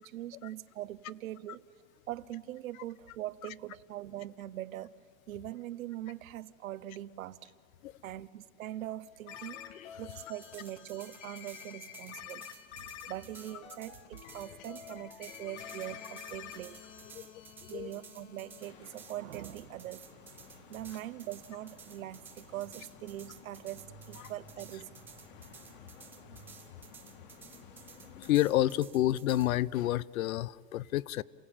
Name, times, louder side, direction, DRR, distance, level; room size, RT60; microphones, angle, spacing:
voice 1, 0.0-1.7 2.1-5.0 5.3-7.5 8.0-9.6 10.0-12.5 13.1-16.8 17.7-20.1 20.7-24.9, right 13 dB, 80° right, 0.9 m, -42 dB
sound 1, 9.3-18.7, left 9 dB, 60° left, 1.8 m, -49 dB
sound 2, 10.1-29.5, right 6 dB, 5° right, 0.5 m, -54 dB
sound 3, 18.6-28.3, left 3 dB, 40° left, 2.1 m, -55 dB
voice 2, 28.2-31.2, left 14 dB, 85° left, 0.7 m, -29 dB
28.0 x 16.5 x 8.8 m
supercardioid pair, 175°, 40 cm